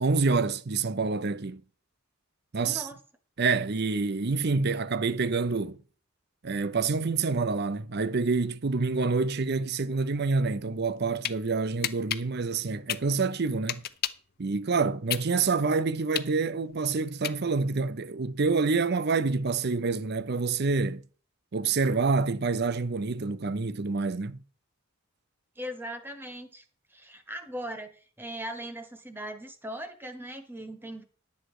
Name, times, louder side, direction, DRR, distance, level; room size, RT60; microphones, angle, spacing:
voice 1, 0.0-1.6 2.5-2.9 3.4-5.8 6.4-13.8 14.4-21.0 21.5-24.4, right 4 dB, 50° right, 0.6 m, -27 dB
voice 2, 2.7-3.0 25.6-26.6 26.9-31.0, equal, 10° right, 1.1 m, -39 dB
sound 1, 10.8-11.4 11.8-14.3 14.7-17.8, left 11 dB, 45° left, 0.6 m, -33 dB
11.5 x 8.1 x 4.8 m
head